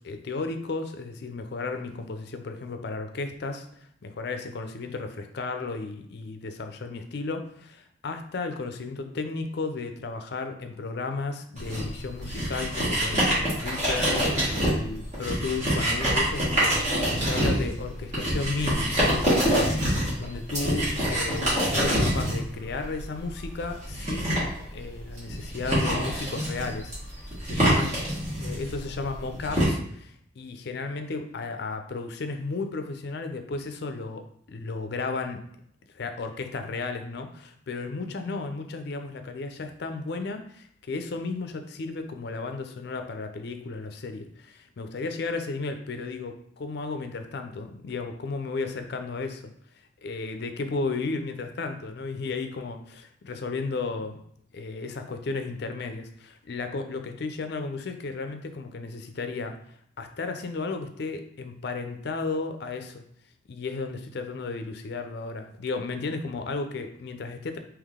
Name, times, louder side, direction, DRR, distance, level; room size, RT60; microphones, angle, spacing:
voice 1, 0.0-19.5 20.2-28.0 28.4-35.4 35.9-49.5 50.0-54.2 54.5-59.6 60.0-63.0 63.5-67.6, left 3 dB, 55° left, 7 dB, 0.4 m, -34 dB
sound 1, 11.6-29.6, equal, 35° right, 1.6 m, -26 dB
3.7 x 2.9 x 3.5 m, 0.68 s
head